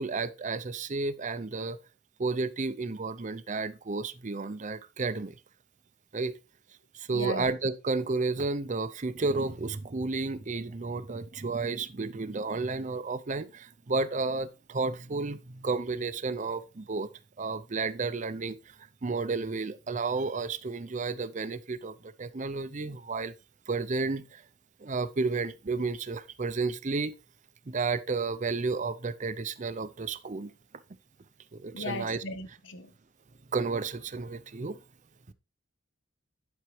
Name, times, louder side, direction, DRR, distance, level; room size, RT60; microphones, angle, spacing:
voice 1, 0.0-1.8 2.2-5.3 6.1-6.3 6.9-17.1 17.4-18.6 19.0-23.3 23.7-24.4 24.8-27.1 27.7-30.5 31.5-32.2 33.5-34.8, right 3 dB, 40° right, 0.6 m, -32 dB
voice 2, 7.1-7.5 31.7-32.9, left 2 dB, 65° left, 1.2 m, -37 dB
9.5 x 7.6 x 3.2 m
head